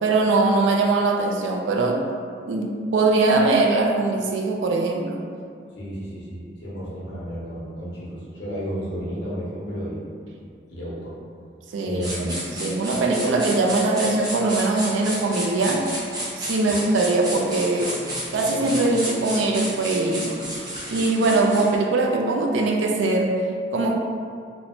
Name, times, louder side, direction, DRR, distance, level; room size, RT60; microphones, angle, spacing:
voice 1, 0.0-2.0 2.5-5.2 11.7-15.9 16.4-18.0 18.3-20.3 20.9-23.4 23.7-24.0, right 3 dB, 80° right, 1 dB, 0.3 m, -21 dB
voice 2, 5.8-10.1 10.7-11.1 11.8-12.4 16.7-16.8, equal, 80° left, -7 dB, 0.8 m, -32 dB
sound 1, 12.0-21.7, equal, 20° right, 0.5 m, -32 dB
3.0 x 2.0 x 2.7 m, 2.3 s
head